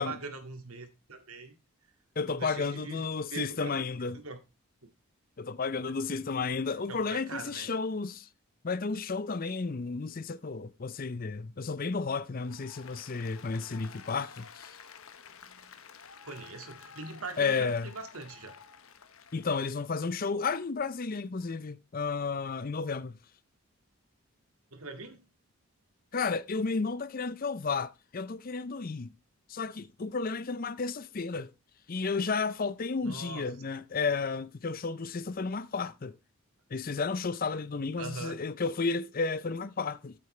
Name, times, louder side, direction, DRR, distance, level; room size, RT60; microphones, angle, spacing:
voice 1, 0.0-1.5 2.3-3.8 4.1-4.4 4.8-4.9 6.9-7.7 16.2-18.6 24.7-25.2 33.0-33.5 38.0-38.4, right 3 dB, 80° right, 2.0 m, -42 dB
voice 2, 2.2-4.2 5.4-8.3 8.6-14.8 17.4-17.9 19.3-23.2 26.1-29.1 29.5-31.5 31.9-36.2 36.7-40.1, left 4 dB, 40° left, 0.5 m, -32 dB
Applause, 12.4-19.9, left 6 dB, 75° left, 1.1 m, -51 dB
13.0 x 8.6 x 3.2 m
head